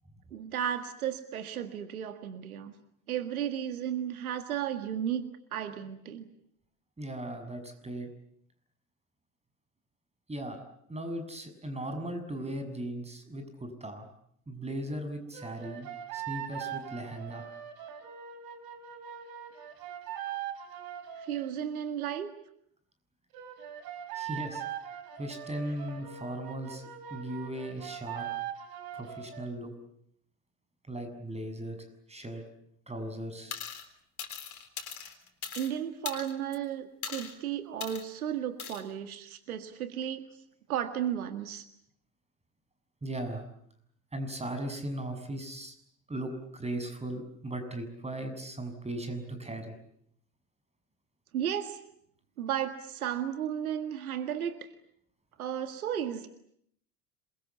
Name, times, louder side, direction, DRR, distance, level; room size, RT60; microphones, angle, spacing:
voice 1, 0.3-2.8 3.1-5.2 5.5-6.3 21.2-22.3 35.5-40.3 40.7-41.7 51.3-51.8 52.4-54.7 55.4-56.3, right 9 dB, 80° right, 9 dB, 1.9 m, -34 dB
voice 2, 7.0-8.1 10.3-10.6 10.9-14.1 14.5-17.5 24.1-24.6 25.2-26.8 27.1-28.3 28.9-29.7 30.9-31.8 32.1-32.4 32.9-33.6 43.0-43.5 44.1-45.7 46.1-49.7, right 1 dB, 15° right, 8 dB, 6.8 m, -37 dB
sound 1, 15.3-21.5 23.3-29.5, right 10 dB, 55° right, 4.4 m, -41 dB
sound 2, 33.5-33.9 34.2-35.7 36.1-36.6 37.0-37.3 37.8-38.0 38.6-38.8, left 7 dB, 85° left, 4.0 m, -39 dB
27.0 x 23.0 x 8.4 m, 0.69 s
hypercardioid pair, 70°, 43 cm